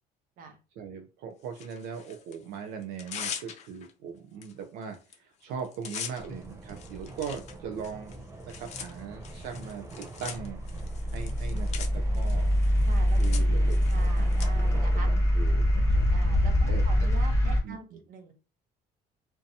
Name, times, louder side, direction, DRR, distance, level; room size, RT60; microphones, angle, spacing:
voice 1, 0.8-10.7 11.1-12.5 13.2-13.8 14.2-16.0 16.7-16.8 17.5-18.0, right 6 dB, 85° right, 5 dB, 0.4 m, -40 dB
Tearing, 1.5-2.4 2.8-3.9 4.4-4.5 4.8-5.1 5.4-14.5, left 7 dB, 45° left, 0.4 m, -42 dB
sound 1, 6.2-16.6, right 2 dB, 15° right, 0.4 m, -45 dB
sound 2, 10.4-17.6, equal, 15° left, 0.8 m, -24 dB
voice 2, 12.8-13.4 13.9-15.1 16.1-18.3, right 4 dB, 60° right, 5 dB, 0.7 m, -44 dB
2.6 x 2.2 x 2.6 m, 0.33 s
cardioid pair, 145°, 16 cm